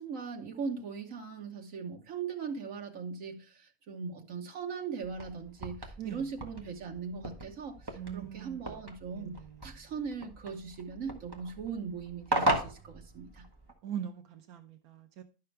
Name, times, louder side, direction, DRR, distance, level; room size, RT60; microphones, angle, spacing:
voice 1, 0.0-13.4, right 5 dB, 65° right, 1.7 m, -39 dB
sound 1, 5.0-13.7, right 1 dB, 15° right, 1.3 m, -37 dB
voice 2, 7.9-8.6 9.2-9.6 13.8-15.2, right 9 dB, 90° right, 1.3 m, -41 dB
11.5 x 5.8 x 3.3 m
omnidirectional pair, 1.5 m